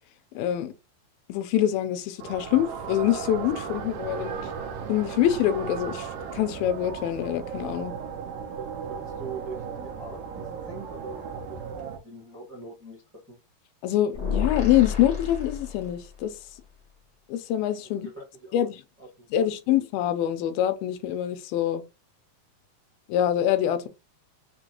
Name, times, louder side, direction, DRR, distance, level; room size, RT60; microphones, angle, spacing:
voice 1, 0.3-0.7 1.3-4.4 4.9-7.9 13.8-16.4 17.3-18.1 18.5-18.8 19.3-21.8 23.1-23.9, left 11 dB, 85° left, 2.5 m, -25 dB
sound 1, 2.2-12.0, right 6 dB, 75° right, 2.2 m, -36 dB
voice 2, 8.5-11.6 11.9-13.0 13.3-13.4 17.8-18.7 19.0-19.5, right 3 dB, 15° right, 0.4 m, -42 dB
sound 2, 14.1-16.3, left 6 dB, 65° left, 0.6 m, -30 dB
6.0 x 2.3 x 2.9 m
omnidirectional pair, 4.1 m